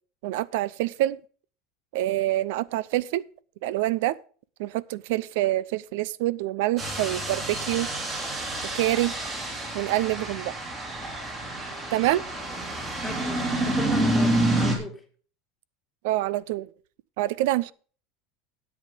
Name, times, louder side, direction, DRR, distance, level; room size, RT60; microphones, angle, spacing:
voice 1, 0.2-1.2 1.9-3.2 3.6-4.2 4.6-7.9 8.6-9.1 9.7-10.5 11.9-12.2 16.0-16.7 17.2-17.7, right 15 dB, 70° right, 0.5 m, -26 dB
sound 1, 6.8-14.8, right 1 dB, 20° right, 2.9 m, -28 dB
voice 2, 13.0-15.0, left 2 dB, 5° left, 2.0 m, -38 dB
10.5 x 8.6 x 5.3 m
supercardioid pair, 160°, 0 cm